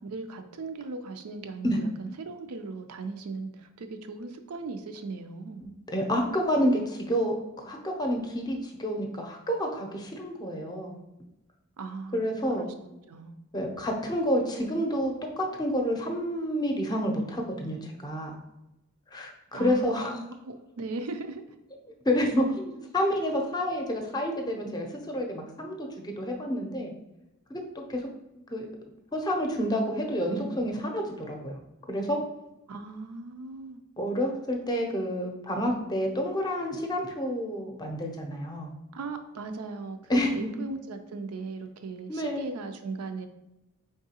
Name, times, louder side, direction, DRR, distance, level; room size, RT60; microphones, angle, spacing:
voice 1, 0.0-5.6 11.8-12.3 12.6-12.7 13.1-13.4 19.5-21.4 32.7-33.8 38.9-43.3, right 3 dB, 80° right, 7 dB, 0.5 m, -38 dB
voice 2, 5.6-7.4 7.6-11.0 12.1-12.7 13.5-18.4 19.1-20.2 22.0-26.9 27.5-28.0 28.5-28.7 29.1-31.6 31.9-32.2 34.0-38.7 40.1-40.5 42.1-42.4, equal, 20° left, 2 dB, 0.6 m, -29 dB
4.6 x 3.6 x 2.8 m, 0.95 s
head